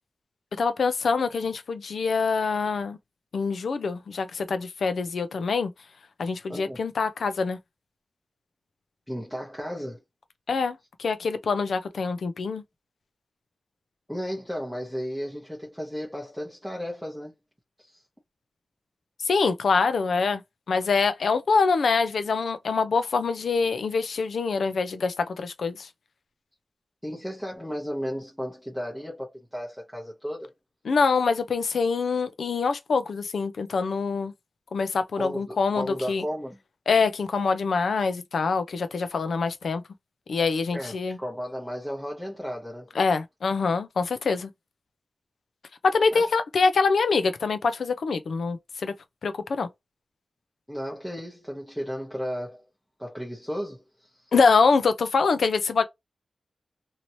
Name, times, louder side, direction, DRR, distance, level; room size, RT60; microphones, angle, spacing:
voice 1, 0.6-3.0 3.3-5.7 6.2-7.6 10.5-12.6 19.2-20.4 20.7-25.9 30.8-34.3 34.7-36.2 36.9-39.8 40.3-41.2 42.9-44.5 45.8-48.9 49.2-49.7 54.3-55.8, left 4 dB, 80° left, 0.5 m, -25 dB
voice 2, 6.5-6.8 9.1-10.0 14.1-17.3 17.8-18.0 27.0-30.5 35.2-36.6 40.7-42.9 46.1-46.3 50.7-52.6 53.0-54.3, equal, ahead, 0.8 m, -34 dB
3.0 x 2.7 x 2.7 m
wide cardioid pair, 145°, 0 cm